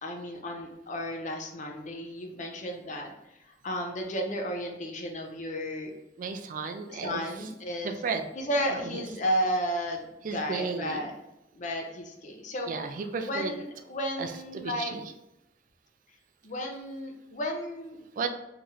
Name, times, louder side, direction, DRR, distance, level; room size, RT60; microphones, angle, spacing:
voice 1, 0.0-5.9 6.9-8.0 8.3-11.2 11.5-12.7 13.0-15.0 16.4-18.0, equal, 45° left, 2 dB, 0.6 m, -33 dB
voice 2, 6.2-7.2 7.8-8.3 10.2-11.1 12.7-13.5 14.2-14.3 14.5-15.0 18.2-18.3, right 5 dB, 45° right, 7 dB, 0.3 m, -33 dB
3.0 x 2.9 x 3.6 m, 0.89 s
head